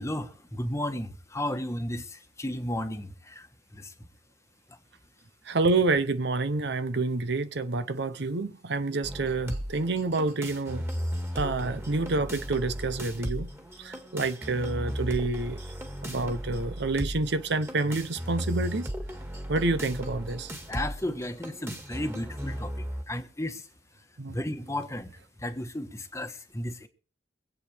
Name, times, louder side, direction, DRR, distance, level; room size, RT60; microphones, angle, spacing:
voice 1, 0.0-3.9 4.7-4.8 20.7-23.7 24.3-26.9, left 1 dB, 15° left, 1.3 m, -34 dB
voice 2, 5.5-10.8 11.3-13.5 13.8-15.6 16.0-18.9 19.5-20.5 24.2-24.4, right 3 dB, 65° right, 0.8 m, -28 dB
sound 1, 9.0-23.0, equal, 15° right, 2.0 m, -36 dB
24.5 x 8.5 x 3.5 m
head